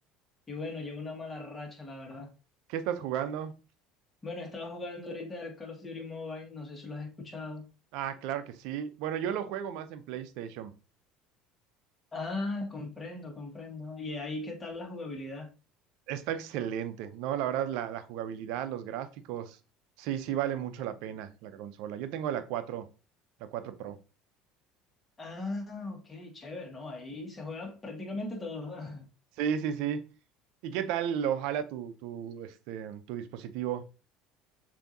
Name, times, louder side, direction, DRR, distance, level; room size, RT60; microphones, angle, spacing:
voice 1, 0.5-2.3 4.2-7.7 12.1-15.5 25.2-29.1, left 2 dB, 25° left, 1.6 m, -39 dB
voice 2, 2.7-3.5 7.9-10.7 16.1-19.6 20.0-22.9 23.4-24.0 29.4-30.1 30.6-33.8, right 9 dB, 70° right, 0.6 m, -34 dB
6.8 x 2.8 x 2.7 m
hypercardioid pair, 75°, 0 cm